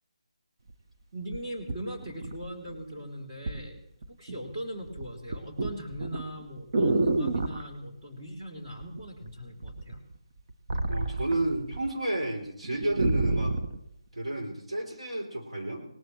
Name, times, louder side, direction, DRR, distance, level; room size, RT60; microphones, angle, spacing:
sound 1, 0.7-0.8 1.3-2.8 3.5-3.7 4.0-4.5 4.8-7.7 8.8-9.3 9.6-11.9 12.2-12.3 12.6-13.8 14.4-14.5, right 2 dB, 50° right, 1.4 m, -29 dB
voice 1, 1.1-3.8 4.2-10.0, equal, 25° right, -4 dB, 3.3 m, -40 dB
voice 2, 10.9-13.6 14.1-15.8, right 1 dB, 85° right, 1 dB, 3.5 m, -31 dB
22.0 x 18.5 x 3.2 m, 0.78 s
figure-of-eight pair, 160°, 3 cm